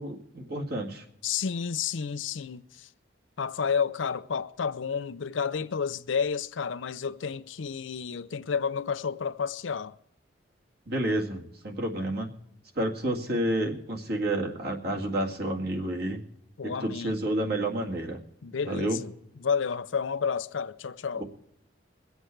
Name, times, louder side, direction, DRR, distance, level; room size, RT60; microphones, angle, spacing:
voice 1, 0.0-1.0 10.9-12.3 12.8-16.2 16.6-18.2 18.7-19.0 21.2-21.3, right 1 dB, 55° right, 2.0 m, -30 dB
voice 2, 1.2-2.9 3.4-10.0 16.6-17.2 18.4-19.1 19.4-21.2, left 6 dB, 75° left, 0.5 m, -31 dB
22.5 x 8.0 x 4.5 m
head